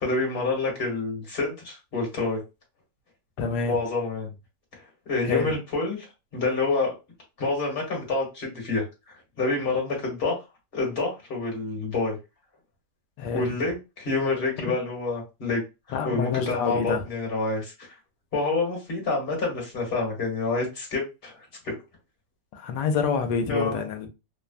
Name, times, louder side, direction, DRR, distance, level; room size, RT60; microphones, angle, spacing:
voice 1, 0.0-2.4 3.6-4.3 4.7-4.8 5.0-6.1 6.3-6.9 7.4-10.4 10.7-12.2 13.3-15.6 15.9-17.7 18.3-21.7 23.5-23.8, left 3 dB, 35° left, 1.3 m, -28 dB
voice 2, 3.4-3.8 5.2-5.5 13.2-13.5 15.9-17.0 22.5-24.1, left 5 dB, 75° left, 1.2 m, -27 dB
3.1 x 2.2 x 2.4 m
omnidirectional pair, 2.0 m